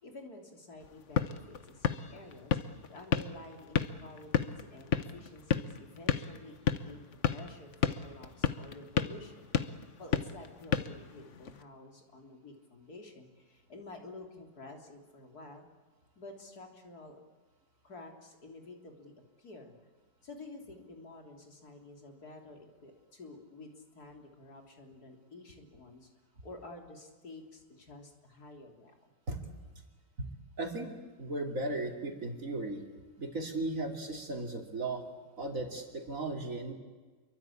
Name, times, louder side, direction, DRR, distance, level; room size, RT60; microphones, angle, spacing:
voice 1, 0.0-7.0 7.3-9.5 10.0-15.7 16.2-17.2 17.8-19.8 20.2-26.1 26.4-29.1, left 2 dB, 70° left, 2 dB, 3.9 m, -50 dB
sound 1, 0.8-11.6, left 8 dB, 50° left, 1.3 m, -34 dB
voice 2, 30.6-32.8 33.2-35.0 35.4-36.7, right 2 dB, 55° right, 2 dB, 3.2 m, -36 dB
27.5 x 23.5 x 8.6 m, 1.4 s
omnidirectional pair, 1.7 m